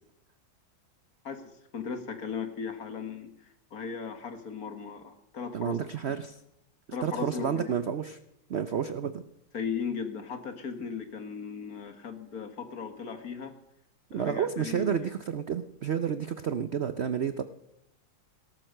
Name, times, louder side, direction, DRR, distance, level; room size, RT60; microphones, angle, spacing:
voice 1, 1.7-5.8 6.1-6.2 6.9-7.8 9.5-13.6 14.1-15.0, left 6 dB, 50° left, 8 dB, 2.1 m, -37 dB
voice 2, 5.5-6.4 7.0-8.2 8.5-9.2 14.1-17.4, right 8 dB, 80° right, 12 dB, 0.5 m, -30 dB
18.0 x 12.0 x 6.6 m, 0.82 s
omnidirectional pair, 2.1 m